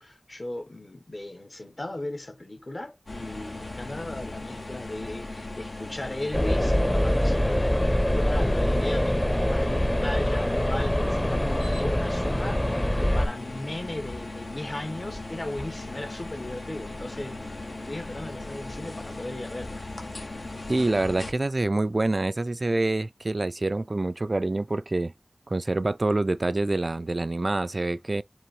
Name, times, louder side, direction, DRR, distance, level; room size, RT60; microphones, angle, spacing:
voice 1, 0.0-17.4 17.7-19.8, left 1 dB, 60° left, 1.3 m, -37 dB
sound 1, 3.1-21.3, left 2 dB, 90° left, 1.1 m, -38 dB
sound 2, 6.3-13.3, equal, 20° left, 0.7 m, -24 dB
voice 2, 20.7-25.1 25.5-28.2, right 2 dB, 60° right, 0.3 m, -26 dB
4.8 x 3.0 x 3.1 m
wide cardioid pair, 50°, 0 cm